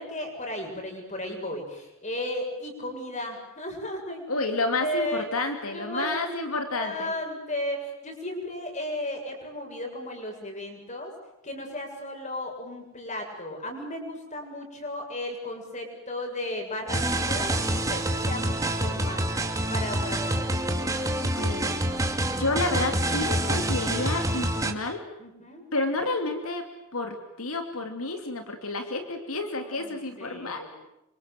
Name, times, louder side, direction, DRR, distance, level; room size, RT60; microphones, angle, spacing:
voice 1, 0.0-4.5 4.8-5.3 5.7-6.6 6.8-11.1 11.4-19.4 19.7-20.5 25.2-25.6 29.6-30.8, left 1 dB, 35° left, 3 dB, 7.5 m, -35 dB
voice 2, 4.3-7.1 21.2-21.7 22.4-25.0 25.7-26.7 26.9-30.8, left 2 dB, 85° left, 5 dB, 2.9 m, -30 dB
sound 1, 16.9-24.7, right 1 dB, 15° right, 2.4 m, -27 dB
29.0 x 25.5 x 7.8 m, 0.89 s
head